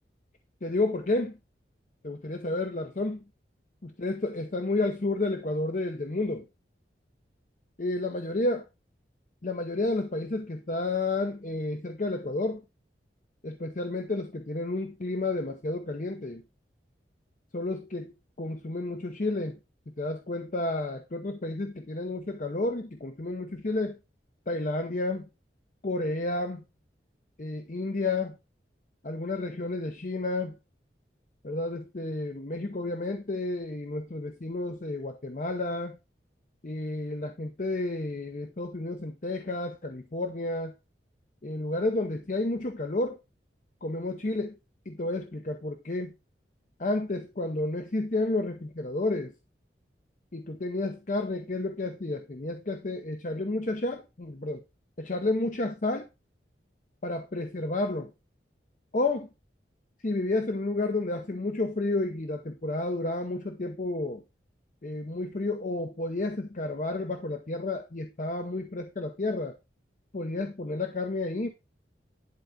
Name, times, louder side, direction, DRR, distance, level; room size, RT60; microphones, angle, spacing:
voice 1, 0.6-1.4 2.0-3.2 3.8-6.5 7.8-8.6 9.4-12.6 13.4-16.4 17.5-19.6 19.9-24.0 24.5-25.3 25.8-26.6 27.4-28.3 29.0-30.5 31.4-35.9 36.6-40.7 41.4-43.2 43.8-44.5 44.9-46.1 46.8-49.3 50.3-54.6 55.0-56.1 57.0-58.1 58.9-59.3 60.0-64.2 64.8-69.6 70.1-71.5, left 2 dB, 45° left, 0.7 m, -31 dB
10.5 x 4.6 x 3.8 m
head